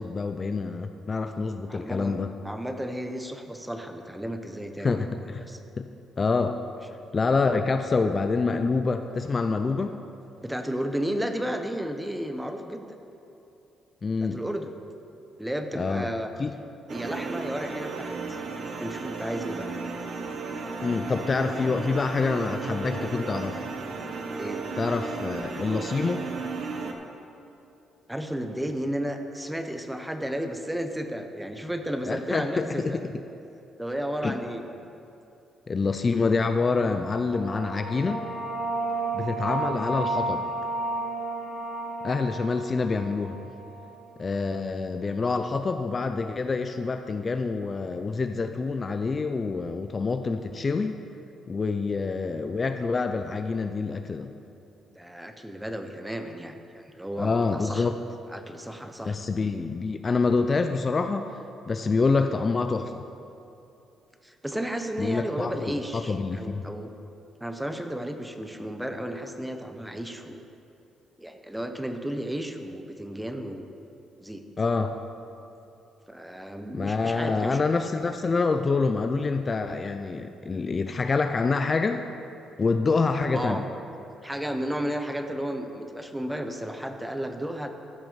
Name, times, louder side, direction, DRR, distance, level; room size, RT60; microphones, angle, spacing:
voice 1, 0.0-2.3 4.8-5.4 5.8-5.9 6.2-6.6 7.1-10.1 14.0-14.4 15.7-16.1 16.4-16.5 20.8-23.6 24.8-26.3 32.1-33.0 34.2-34.4 35.7-38.2 39.1-40.5 42.0-43.4 44.2-51.0 51.5-54.3 57.2-58.0 59.0-61.3 61.7-63.0 65.0-66.6 74.6-75.0 76.7-82.1 82.6-83.7, left 4 dB, 35° left, 7 dB, 0.5 m, -26 dB
voice 2, 1.7-2.2 2.4-5.1 5.5-5.6 10.4-12.8 14.2-14.7 15.4-16.3 16.9-18.4 18.8-19.7 24.4-24.6 28.1-33.0 33.8-34.6 51.7-51.8 54.9-57.9 58.3-59.2 64.2-66.9 67.4-70.4 71.2-73.7 74.2-74.4 76.1-77.6 83.3-83.6 84.2-87.7, equal, 5° right, 6 dB, 0.9 m, -33 dB
sound 1, 16.9-26.9, right 4 dB, 55° right, 1.1 m, -34 dB
sound 2, 37.0-44.3, right 2 dB, 35° right, 2.3 m, -32 dB
14.0 x 6.0 x 5.6 m, 2.8 s
cardioid pair, 90°, 0 cm